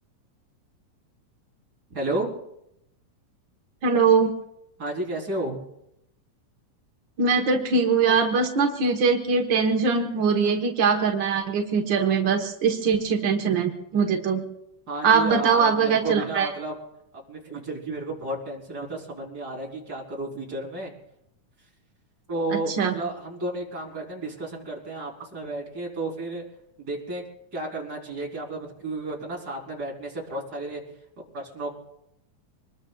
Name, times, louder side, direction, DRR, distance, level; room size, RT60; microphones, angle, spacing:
voice 1, 1.9-2.3 4.8-5.6 14.9-16.7 17.1-20.9 22.3-26.4 26.8-27.2 27.5-30.8 31.3-31.7, right 2 dB, 25° right, -2 dB, 4.0 m, -32 dB
voice 2, 3.8-4.3 7.2-14.4 15.0-16.5 22.8-22.9, right 5 dB, 65° right, 2 dB, 1.1 m, -22 dB
26.0 x 20.5 x 2.4 m, 0.81 s
omnidirectional pair, 4.0 m